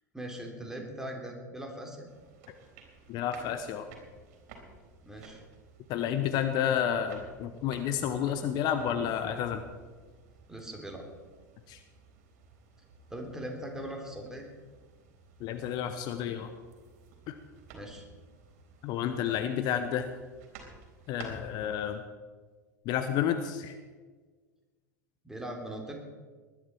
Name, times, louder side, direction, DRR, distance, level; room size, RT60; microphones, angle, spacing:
voice 1, 0.1-2.1 5.0-5.4 10.5-11.0 13.1-14.4 17.7-18.1 25.2-25.9, right 1 dB, 5° right, 1 dB, 3.4 m, -40 dB
sound 1, 2.1-22.0, right 4 dB, 55° right, 3.8 m, -54 dB
voice 2, 3.1-3.9 5.9-9.6 11.7-11.8 15.4-16.5 17.3-17.4 18.8-20.1 21.1-22.0 22.8-23.8, left 9 dB, 45° left, 8 dB, 1.0 m, -30 dB
20.0 x 11.5 x 4.6 m, 1.4 s
figure-of-eight pair, 85°, 10 cm